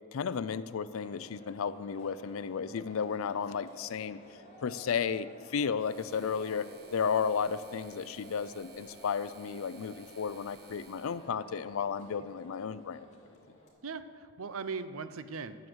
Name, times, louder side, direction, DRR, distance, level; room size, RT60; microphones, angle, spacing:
voice 1, 0.1-4.2 4.6-13.1, left 6 dB, 75° left, 15 dB, 0.4 m, -33 dB
sound 1, 0.9-13.7, left 1 dB, 35° left, 3.1 m, -53 dB
sound 2, 5.8-11.3, right 5 dB, 50° right, 1.1 m, -58 dB
voice 2, 13.8-15.7, right 5 dB, 75° right, 12 dB, 0.6 m, -39 dB
12.5 x 7.0 x 7.8 m, 2.4 s
head